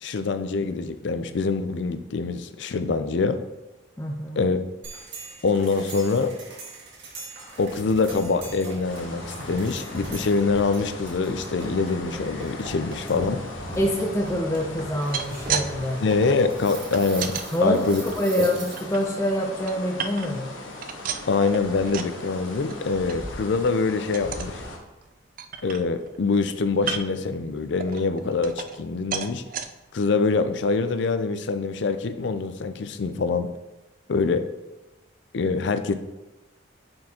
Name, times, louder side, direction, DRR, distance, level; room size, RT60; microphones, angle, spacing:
voice 1, 0.0-3.4 4.4-4.6 5.4-6.3 7.6-13.5 16.0-18.0 18.4-18.5 21.3-24.6 25.6-29.4 29.9-33.5 34.1-34.4 35.3-35.9, left 4 dB, 65° left, 10 dB, 0.4 m, -24 dB
voice 2, 4.0-4.4 13.7-16.0 17.5-20.5, equal, 15° left, 0 dB, 0.5 m, -25 dB
sound 1, 4.8-19.1, right 2 dB, 70° right, 1.7 m, -40 dB
sound 2, 8.8-24.8, left 2 dB, 85° left, 1.1 m, -39 dB
sound 3, 14.9-15.7 16.0-17.5 18.0-19.0 19.4-20.5 20.8-22.2 22.5-22.8 23.1-23.2 23.6-23.8 24.1-24.5 25.0-25.1 25.4-26.2 26.8-27.3 27.8-28.9 29.1-29.7 30.3-30.4 30.7-30.8, right 7 dB, 45° right, 0.4 m, -33 dB
9.5 x 4.4 x 2.9 m, 1.0 s
head